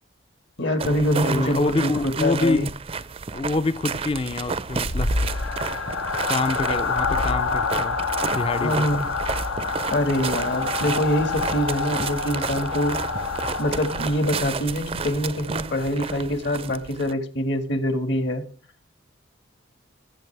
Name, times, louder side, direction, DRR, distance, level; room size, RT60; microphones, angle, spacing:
voice 1, 0.6-2.7 8.6-9.1 9.9-13.2 13.6-18.4, equal, 60° left, 1.7 m, -24 dB
sound 1, 0.8-17.1, right 5 dB, 30° right, 0.5 m, -32 dB
voice 2, 1.2-2.7 3.3-5.1 6.3-8.0 8.3-8.9, left 2 dB, 30° left, 0.4 m, -26 dB
sound 2, 4.4-14.4, left 4 dB, 90° left, 1.1 m, -27 dB
18.5 x 8.5 x 3.3 m
head